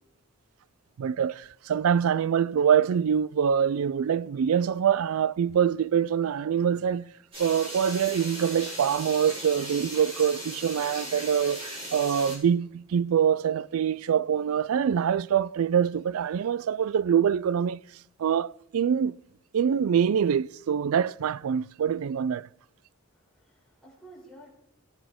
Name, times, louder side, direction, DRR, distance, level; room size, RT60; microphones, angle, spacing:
voice 1, 1.0-7.1 7.4-11.6 11.9-17.8 18.2-19.2 19.5-22.5, right 8 dB, 75° right, 0.4 m, -25 dB
sound 1, 7.3-12.4, equal, 25° right, 5.2 m, -38 dB
voice 2, 23.1-24.5, right 1 dB, 5° left, 5.3 m, -51 dB
18.0 x 10.0 x 3.6 m
head